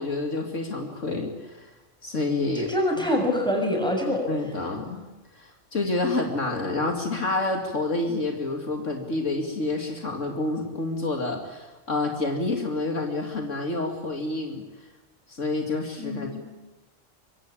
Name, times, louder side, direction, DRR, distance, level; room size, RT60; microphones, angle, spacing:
voice 1, 0.0-1.7 2.0-2.7 4.3-5.1 5.3-14.6 15.3-16.4, left 2 dB, 65° left, 3 dB, 2.8 m, -28 dB
voice 2, 2.5-4.3 16.0-16.4, left 1 dB, 5° left, 1 dB, 7.1 m, -25 dB
25.5 x 22.5 x 8.8 m, 1.1 s
omnidirectional pair, 1.4 m